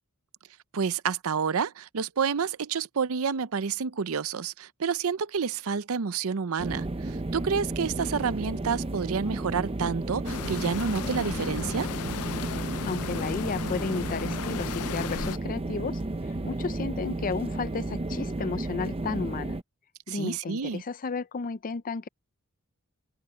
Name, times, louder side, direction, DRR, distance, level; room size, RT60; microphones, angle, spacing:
voice 1, 0.7-11.9 20.1-20.8, right 6 dB, 70° right, 0.6 m, -29 dB
sound 1, 6.6-19.6, right 2 dB, 25° right, 0.6 m, -33 dB
sound 2, 10.2-15.4, left 6 dB, 90° left, 0.5 m, -36 dB
voice 2, 12.8-19.6 20.1-22.1, left 4 dB, 40° left, 0.5 m, -33 dB
head